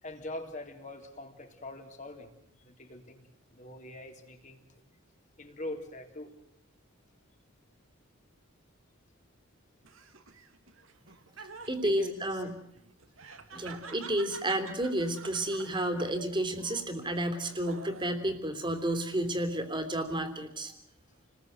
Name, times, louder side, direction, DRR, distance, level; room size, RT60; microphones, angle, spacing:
voice 1, 0.0-4.6 5.4-6.3 11.8-12.4, left 1 dB, 35° left, 5 dB, 3.5 m, -43 dB
Laughter, 9.8-18.3 18.7-19.4, right 4 dB, 75° right, 2.7 m, -49 dB
voice 2, 11.7-12.5 13.5-20.7, right 1 dB, 20° right, 8 dB, 3.2 m, -31 dB
29.5 x 20.5 x 8.0 m, 0.71 s
head